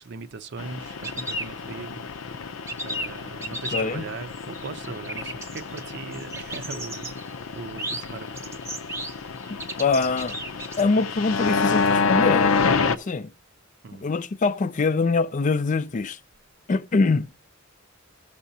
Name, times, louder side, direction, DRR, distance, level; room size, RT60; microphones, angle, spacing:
voice 1, 0.0-2.1 2.8-8.5 13.8-14.1, right 4 dB, 55° right, 0.6 m, -39 dB
sound 1, 0.6-13.0, left 5 dB, 85° left, 0.6 m, -28 dB
sound 2, 0.8-2.2 2.5-10.8, right 1 dB, 15° right, 0.8 m, -36 dB
voice 2, 3.7-4.1 9.8-10.4 10.8-12.6 12.9-13.3 13.9-16.2 16.7-17.3, left 4 dB, 40° left, 0.4 m, -24 dB
15.5 x 6.7 x 2.8 m
head